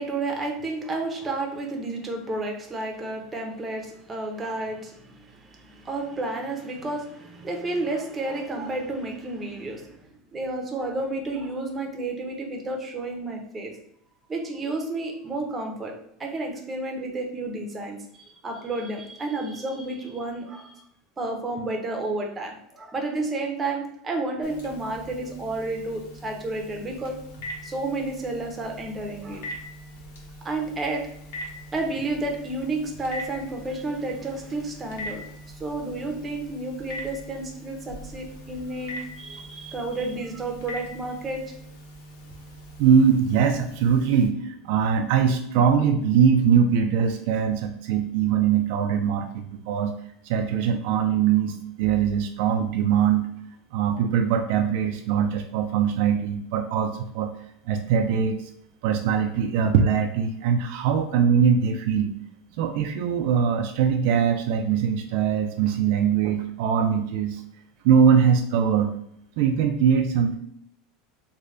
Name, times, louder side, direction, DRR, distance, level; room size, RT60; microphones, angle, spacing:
voice 1, 0.0-13.8 14.3-15.9 16.2-20.8 21.2-27.2 27.6-29.5 30.4-31.1 31.7-41.5, right 2 dB, 15° right, 1 dB, 0.6 m, -31 dB
Telephone, 24.4-44.3, equal, 90° left, 0.9 m, -42 dB
voice 2, 42.8-49.9 50.2-53.3 53.7-57.3 57.7-58.5 58.8-62.1 62.6-67.4 67.8-68.9 69.4-70.3, right 7 dB, 60° right, 5 dB, 0.3 m, -22 dB
3.2 x 2.2 x 3.7 m, 0.71 s
supercardioid pair, 155°, 0 cm